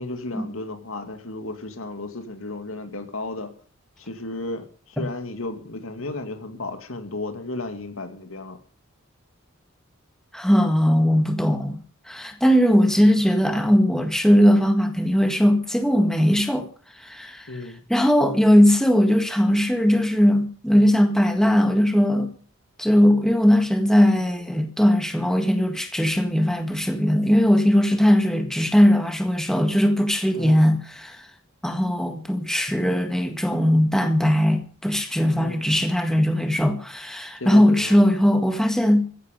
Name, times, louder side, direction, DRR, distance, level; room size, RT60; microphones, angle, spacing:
voice 1, 0.0-3.5 4.0-8.6 17.5-17.8 30.3-30.7 35.4-35.7 37.4-38.0, left 2 dB, 75° left, 2.4 m, -34 dB
voice 2, 10.3-11.8 12.1-16.7 17.0-17.5 17.9-22.3 22.8-31.3 31.6-39.1, equal, ahead, 1.7 m, -19 dB
15.0 x 15.0 x 5.3 m
head